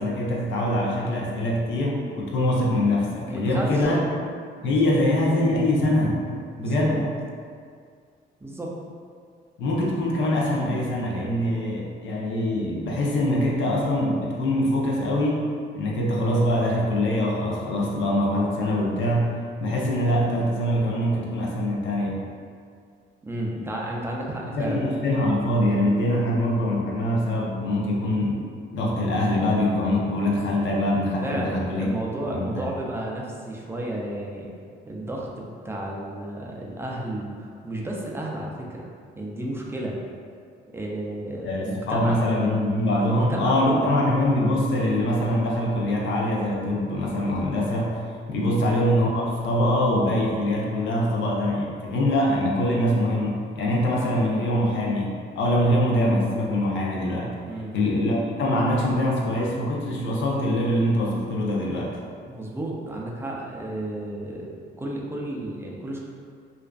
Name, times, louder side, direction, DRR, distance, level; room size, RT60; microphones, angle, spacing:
voice 1, 0.0-4.0 4.6-6.2 6.6-7.0 9.6-15.5 15.7-22.2 24.5-28.4 28.7-31.9 32.3-32.4 41.4-48.0 48.3-57.4 57.7-61.9, left 1 dB, 75° left, -3 dB, 0.5 m, -23 dB
voice 2, 3.3-3.9 4.6-4.9 6.6-7.1 8.4-8.7 23.2-24.8 31.2-34.5 34.9-38.9 39.2-40.0 40.7-42.3 43.0-43.9 48.3-48.5 57.5-57.8 62.3-66.0, right 1 dB, 10° right, -2 dB, 0.4 m, -32 dB
2.4 x 2.3 x 2.2 m, 2.1 s
cardioid pair, 90°, 20 cm